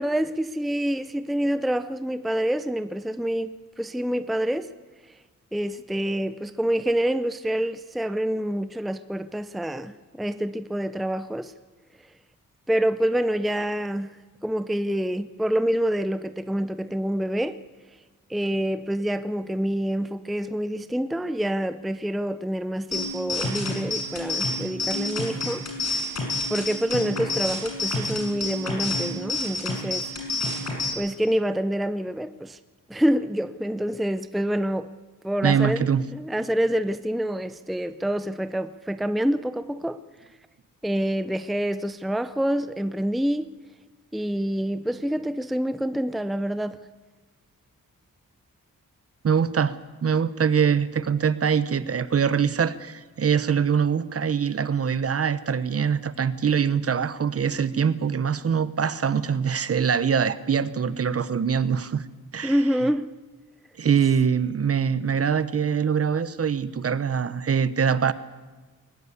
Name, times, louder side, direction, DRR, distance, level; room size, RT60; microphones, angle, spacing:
voice 1, 0.0-4.7 5.5-11.5 12.7-14.1 14.4-17.6 18.3-25.6 26.5-30.1 31.0-32.6 32.9-34.9 35.2-40.0 40.8-43.5 44.1-46.8 62.4-63.2, equal, ahead, 0.6 m, -27 dB
sound 1, 22.9-30.9, left 2 dB, 55° left, 5.9 m, -29 dB
voice 2, 35.4-36.1 49.2-62.1 62.3-62.6 63.8-68.1, right 7 dB, 45° right, 1.0 m, -23 dB
21.5 x 19.5 x 8.4 m
wide cardioid pair, 130°, 33 cm